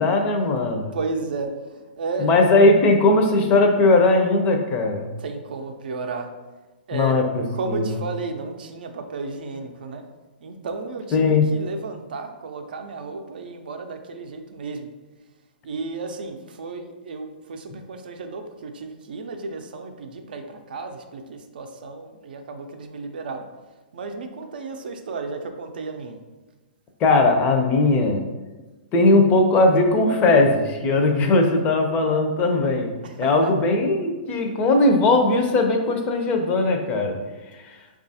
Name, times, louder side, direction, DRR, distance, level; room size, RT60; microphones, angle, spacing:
voice 1, 0.0-1.0 2.2-5.1 6.9-8.0 11.1-11.4 27.0-28.2 28.9-32.9 33.2-37.2, left 2 dB, 25° left, 4 dB, 0.5 m, -19 dB
voice 2, 0.9-2.4 5.2-6.3 6.9-7.2 7.5-10.0 10.4-14.9 15.6-23.5 23.9-26.2 33.0-33.7, right 3 dB, 70° right, 5 dB, 0.5 m, -33 dB
4.5 x 2.4 x 2.7 m, 1.2 s
hypercardioid pair, 135°, 5 cm